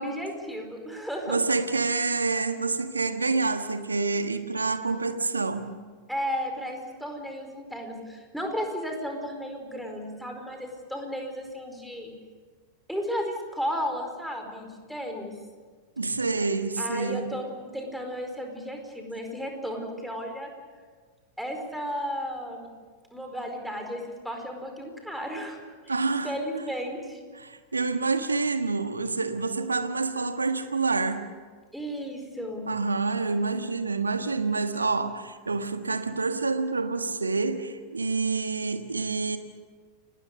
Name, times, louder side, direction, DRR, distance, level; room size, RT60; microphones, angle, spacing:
voice 1, 0.0-1.4 6.1-12.1 12.9-15.4 16.8-20.5 21.4-22.7 23.1-25.6 25.9-27.2 31.7-32.7, equal, ahead, 3 dB, 4.7 m, -34 dB
voice 2, 1.3-5.7 16.0-17.3 25.9-26.3 27.4-31.3 32.7-39.4, right 4 dB, 80° right, 8 dB, 1.5 m, -27 dB
30.0 x 19.5 x 6.8 m, 1.5 s
figure-of-eight pair, 90°, 0 cm